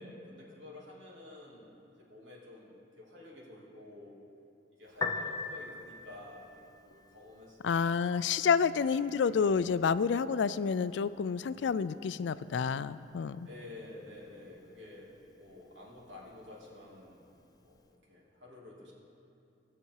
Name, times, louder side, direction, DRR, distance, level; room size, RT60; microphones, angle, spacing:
voice 1, 0.0-4.2 4.8-8.2 8.9-9.1 13.5-17.2 17.7-17.8 18.1-18.9, left 2 dB, 85° right, -4 dB, 2.9 m, -50 dB
Piano, 4.9-17.9, left 4 dB, 20° left, 0.6 m, -46 dB
voice 2, 7.6-13.5, left 6 dB, 70° left, 15 dB, 0.4 m, -29 dB
20.0 x 6.9 x 4.7 m, 2.6 s
head